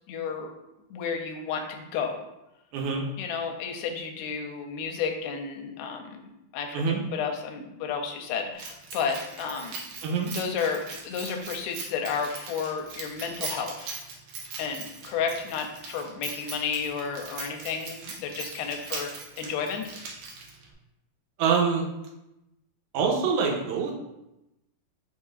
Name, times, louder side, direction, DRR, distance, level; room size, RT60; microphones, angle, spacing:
voice 1, 0.1-0.5 0.9-2.2 3.2-9.8 10.3-14.0 14.6-19.1 19.4-19.9, left 6 dB, 85° left, 3 dB, 2.5 m, -32 dB
voice 2, 2.7-3.0 6.7-7.0 10.0-10.3 21.4-21.9 22.9-23.9, right 5 dB, 90° right, -1 dB, 2.6 m, -25 dB
Keys jangling, 8.6-20.7, right 4 dB, 70° right, 2.0 m, -40 dB
5.7 x 3.7 x 2.4 m, 0.91 s
omnidirectional pair, 4.3 m